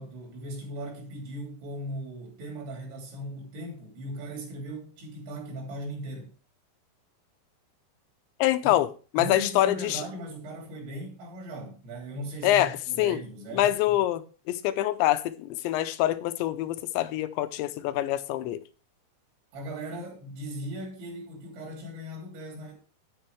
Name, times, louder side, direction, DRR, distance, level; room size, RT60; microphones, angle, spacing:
voice 1, 0.0-6.3 8.6-8.7 9.2-13.7 19.5-22.7, right 1 dB, 85° right, 5.6 m, -38 dB
voice 2, 8.4-10.0 12.4-13.2 13.5-18.6, left 14 dB, 85° left, 3.0 m, -25 dB
10.5 x 9.3 x 3.3 m
omnidirectional pair, 5.2 m